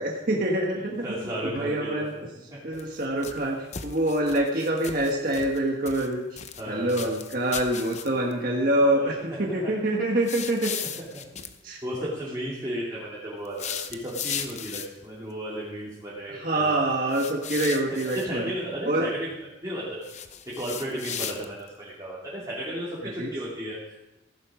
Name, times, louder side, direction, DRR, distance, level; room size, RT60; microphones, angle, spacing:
voice 1, 0.0-2.1 2.6-6.4 6.7-10.7 11.6-12.1 16.3-18.5 18.8-19.1 23.0-23.3, right 1 dB, 50° right, -2 dB, 1.5 m, -26 dB
voice 2, 1.0-2.0 2.5-2.6 6.6-7.1 8.9-9.2 11.3-11.5 11.8-16.8 18.0-19.3 19.6-20.0 20.5-24.2, equal, 20° right, -7 dB, 2.9 m, -34 dB
sound 1, 2.7-3.4 3.7-5.6 5.8-6.6 6.9-8.3 10.2-11.5 13.4-15.0 17.1-18.3 20.0-21.7, left 8 dB, 40° left, 0.8 m, -36 dB
15.5 x 11.5 x 5.0 m, 0.96 s
head